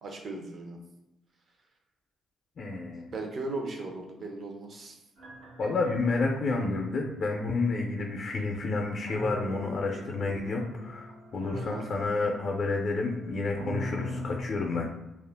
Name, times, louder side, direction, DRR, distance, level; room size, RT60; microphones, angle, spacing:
voice 1, 0.0-0.8 3.1-5.0 11.5-11.8, right 2 dB, 55° right, 2 dB, 0.6 m, -37 dB
voice 2, 2.6-3.1 5.6-14.9, left 3 dB, 55° left, 1 dB, 0.4 m, -30 dB
sound 1, 5.2-14.4, left 1 dB, 85° right, 0.9 m, -41 dB
2.4 x 2.1 x 3.4 m, 0.95 s
cardioid pair, 90°, 0 cm